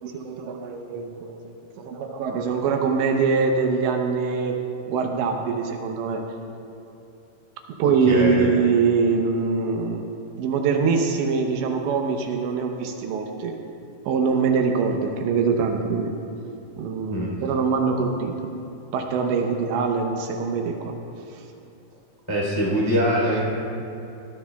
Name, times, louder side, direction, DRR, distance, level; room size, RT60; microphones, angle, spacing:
voice 1, 0.0-1.4 1.8-4.6 4.9-6.2 7.8-10.0 10.4-13.6 14.1-16.1 16.8-18.4 18.9-20.9, right 5 dB, 80° right, 3 dB, 3.0 m, -23 dB
voice 2, 7.8-8.7 17.1-17.3 22.3-23.4, equal, 10° left, -5 dB, 1.9 m, -23 dB
19.5 x 15.0 x 2.3 m, 2.7 s
omnidirectional pair, 5.3 m